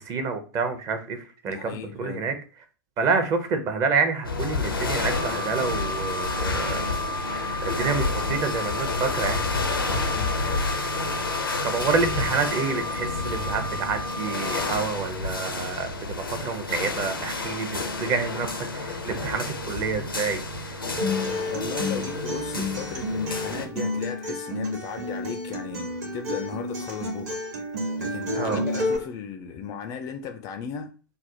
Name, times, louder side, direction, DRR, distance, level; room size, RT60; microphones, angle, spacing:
voice 1, 0.0-2.3 3.0-6.9 7.6-9.4 11.6-20.4 20.7-20.8 28.4-28.6, right 5 dB, 30° right, 7 dB, 0.6 m, -28 dB
voice 2, 1.5-2.3 9.8-10.6 21.2-27.4 28.0-30.9, left 7 dB, 30° left, 7 dB, 0.3 m, -36 dB
sound 1, 4.2-23.7, left 3 dB, 85° left, 0.5 m, -30 dB
Wind instrument woodwind instrument, 5.1-14.7, left 1 dB, 90° right, 0.4 m, -34 dB
Acoustic guitar, 21.0-29.0, left 1 dB, 50° right, 1.0 m, -30 dB
3.3 x 2.0 x 2.6 m, 0.36 s
figure-of-eight pair, 100°, 11 cm